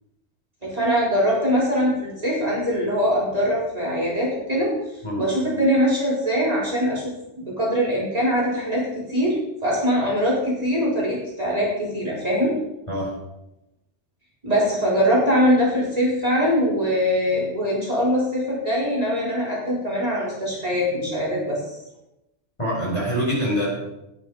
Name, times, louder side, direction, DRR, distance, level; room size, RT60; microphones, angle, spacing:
voice 1, 0.6-4.7 5.2-7.0 7.4-12.5 14.4-21.8, equal, 30° right, -6 dB, 4.6 m, -22 dB
voice 2, 22.6-23.7, equal, 25° left, -5 dB, 4.9 m, -24 dB
14.5 x 9.2 x 5.0 m, 0.91 s
omnidirectional pair, 1.3 m